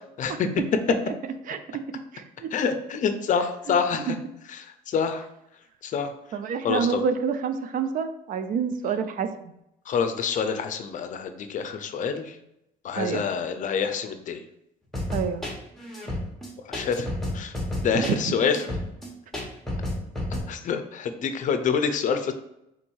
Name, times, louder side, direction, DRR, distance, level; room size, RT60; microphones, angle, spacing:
voice 1, 1.5-1.8 2.1-2.5 4.1-4.2 6.3-9.5 13.0-13.2 15.1-15.4 17.9-18.3, right 6 dB, 55° right, 10 dB, 0.4 m, -28 dB
voice 2, 2.5-4.2 4.5-5.2 5.8-6.1 6.6-7.0 9.9-12.4 12.8-14.4 16.7-17.5 17.8-18.6 20.5-22.3, left 6 dB, 50° left, 8 dB, 0.5 m, -27 dB
sound 1, 14.9-20.4, left 1 dB, ahead, 1.2 m, -31 dB
3.8 x 2.6 x 4.6 m, 0.82 s
cardioid pair, 110°, 17 cm